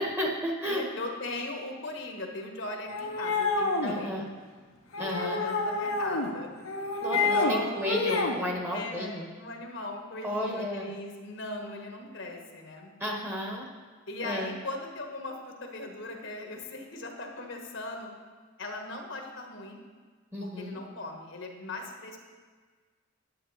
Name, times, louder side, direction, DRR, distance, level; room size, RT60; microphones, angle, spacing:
voice 1, 0.0-0.8 3.8-4.3 5.0-5.4 7.0-9.3 10.2-10.9 13.0-13.6 14.2-14.5 20.3-20.8, left 1 dB, 10° right, -1 dB, 1.3 m, -32 dB
voice 2, 0.7-4.4 5.0-6.5 7.1-7.8 8.7-13.0 14.1-18.1 18.6-19.8 20.4-22.2, left 2 dB, 60° left, 2 dB, 1.3 m, -39 dB
sound 1, 2.9-4.0 4.9-6.3 6.6-7.5 7.8-8.4, left 3 dB, 85° left, 1.2 m, -28 dB
9.7 x 8.7 x 4.2 m, 1.5 s
head